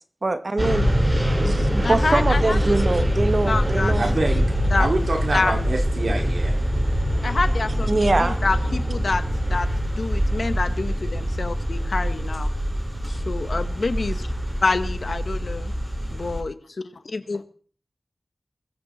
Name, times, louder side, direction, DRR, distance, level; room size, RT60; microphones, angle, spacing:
voice 1, 0.2-1.0 1.4-4.1 7.9-8.4, right 2 dB, 60° right, 8 dB, 2.1 m, -23 dB
sound 1, 0.6-16.4, equal, 30° right, 7.2 m, -24 dB
voice 2, 1.8-2.6 3.2-3.9 4.3-4.4 4.7-4.9 5.3-5.5 7.2-12.5 13.1-14.3 14.6-15.7 16.1-16.5 17.0-17.4, left 3 dB, 80° left, 9 dB, 1.6 m, -27 dB
voice 3, 4.0-4.4 4.8-6.5, right 2 dB, 85° right, 1 dB, 5.1 m, -26 dB
21.0 x 14.5 x 4.4 m, 0.44 s
wide cardioid pair, 50°, 0 cm